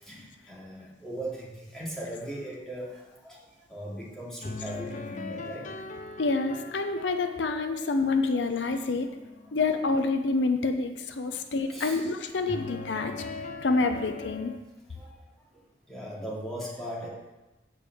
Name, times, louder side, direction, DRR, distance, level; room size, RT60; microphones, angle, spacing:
voice 1, 0.0-3.4 3.7-5.7 11.3-11.4 11.7-12.0 14.9-15.1 15.9-17.1, right 1 dB, ahead, -7 dB, 2.6 m, -38 dB
sound 1, 4.4-9.7 12.5-14.6, left 3 dB, 45° left, 0.6 m, -41 dB
voice 2, 6.2-9.1 9.5-13.1 13.6-14.5, left 3 dB, 80° left, 7 dB, 0.7 m, -27 dB
8.6 x 5.3 x 7.6 m, 1.1 s
head